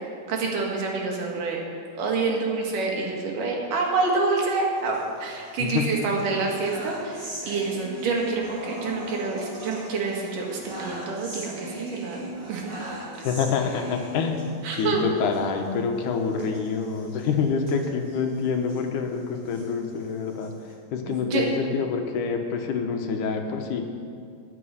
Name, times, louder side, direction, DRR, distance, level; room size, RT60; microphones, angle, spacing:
voice 1, 0.3-1.6 2.0-12.9 14.6-15.0 21.1-21.5, right 4 dB, 90° right, -1 dB, 3.5 m, -27 dB
sound 1, 4.8-5.7 6.1-14.9 15.3-15.4 15.7-15.8 16.3-18.8 19.3-20.7, left 1 dB, 40° right, 4.0 m, -39 dB
voice 2, 13.2-20.5 20.9-23.8, left 5 dB, 80° left, 4 dB, 2.6 m, -27 dB
14.0 x 6.8 x 9.7 m, 2.3 s
omnidirectional pair, 3.7 m